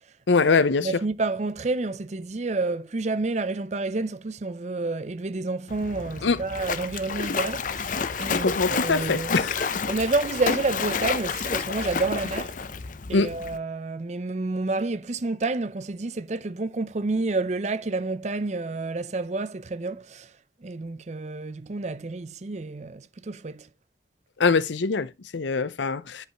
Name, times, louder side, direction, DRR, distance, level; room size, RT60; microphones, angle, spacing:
voice 1, 0.3-0.9 6.2-6.4 8.3-9.7 13.1-13.4 24.4-26.3, left 4 dB, 80° left, 0.7 m, -23 dB
voice 2, 0.8-9.4 9.9-12.5 13.1-20.3 20.6-23.7, right 3 dB, 40° right, 0.5 m, -29 dB
Splash splatter, 5.7-13.6, left 5 dB, 45° left, 0.6 m, -30 dB
10.0 x 5.5 x 3.0 m
head